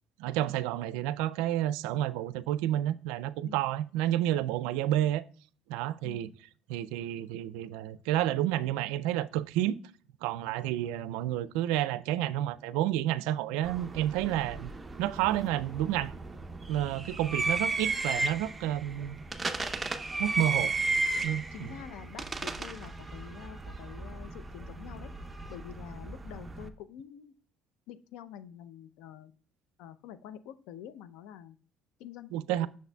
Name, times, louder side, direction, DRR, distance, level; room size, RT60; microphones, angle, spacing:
voice 1, 0.2-5.2 5.7-6.3 6.7-9.8 10.2-14.7 15.0-16.1 16.7-19.2 20.2-20.7 21.2-21.7 32.3-32.7, right 13 dB, 90° right, 0.3 m, -30 dB
sound 1, 13.6-26.7, right 3 dB, 20° right, 0.6 m, -35 dB
voice 2, 21.5-25.1 25.5-27.3 27.9-29.3 29.8-31.6 32.0-32.7, left 10 dB, 85° left, 0.5 m, -47 dB
8.2 x 6.4 x 2.2 m
cardioid pair, 110°, 0 cm